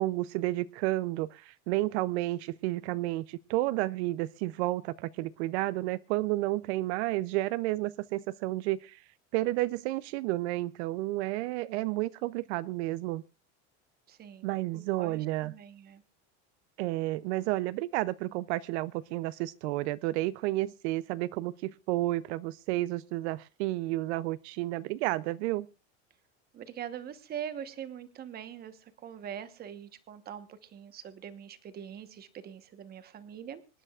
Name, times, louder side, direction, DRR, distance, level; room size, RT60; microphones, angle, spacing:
voice 1, 0.0-9.0 9.3-13.2 14.4-15.5 16.8-25.7, right 17 dB, 80° right, 16 dB, 0.6 m, -31 dB
voice 2, 14.1-16.0 26.5-33.8, right 9 dB, 30° right, 11 dB, 1.1 m, -43 dB
26.0 x 10.0 x 2.4 m, 0.31 s
cardioid pair, 155°, 33 cm